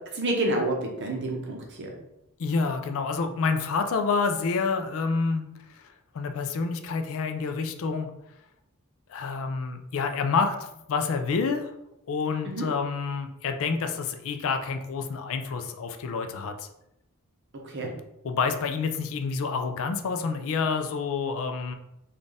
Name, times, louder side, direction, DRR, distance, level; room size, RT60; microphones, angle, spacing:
voice 1, 0.1-1.9 12.4-12.7 17.6-17.9, right 1 dB, 55° right, 1 dB, 0.8 m, -29 dB
voice 2, 2.4-5.8 6.1-8.1 9.1-10.5 10.9-11.7 12.1-16.7 17.8-17.9 18.2-21.7, left 4 dB, 65° left, 7 dB, 0.4 m, -28 dB
4.0 x 2.4 x 3.4 m, 0.85 s
head